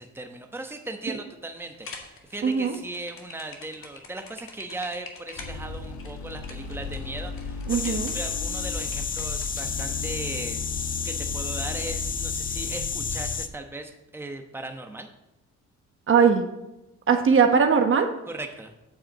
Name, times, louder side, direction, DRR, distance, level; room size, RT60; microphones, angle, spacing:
voice 1, 0.0-10.6 11.0-15.1 18.3-18.7, right 2 dB, 10° right, 4 dB, 1.1 m, -38 dB
sound 1, 1.7-9.8, left 3 dB, 45° left, 1.9 m, -45 dB
voice 2, 2.4-2.8 7.7-8.1 16.1-16.4 17.1-18.1, right 6 dB, 45° right, 5 dB, 1.1 m, -20 dB
sound 2, 5.4-13.4, left 4 dB, 70° left, 1.2 m, -35 dB
sound 3, 7.7-13.5, left 6 dB, 30° left, 0.6 m, -32 dB
9.1 x 4.9 x 7.2 m, 0.93 s
cardioid pair, 90°, 30 cm